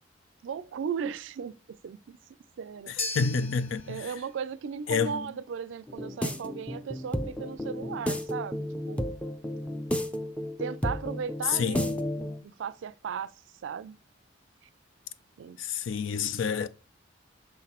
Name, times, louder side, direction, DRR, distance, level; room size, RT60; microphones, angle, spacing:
voice 1, 0.4-2.2 2.6-2.9 3.9-9.1 10.6-13.3 13.6-14.0 14.6-14.7 15.4-15.6, right 7 dB, 70° right, 0.3 m, -36 dB
voice 2, 2.9-4.1 4.9-5.3 11.5-12.0 15.6-16.7, left 6 dB, 80° left, 0.4 m, -29 dB
sound 1, 3.0-11.4, left 3 dB, 35° left, 0.8 m, -44 dB
sound 2, 5.9-12.4, left 1 dB, 5° left, 0.5 m, -33 dB
6.6 x 5.8 x 2.9 m
head